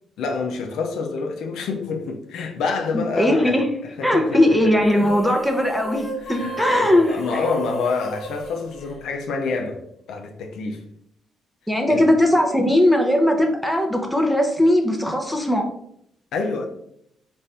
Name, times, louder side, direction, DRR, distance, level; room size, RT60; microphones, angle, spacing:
voice 1, 0.2-3.6 4.0-4.7 6.2-9.8 10.1-10.8 11.9-12.1 16.3-16.7, left 4 dB, 80° left, 0.6 m, -27 dB
voice 2, 2.9-3.7 4.0-7.5 11.7-15.6, left 1 dB, 5° left, 0.7 m, -19 dB
sound 1, 4.8-9.5, right 1 dB, 50° left, 1.2 m, -34 dB
4.0 x 2.6 x 3.3 m
cardioid pair, 90°, 0 cm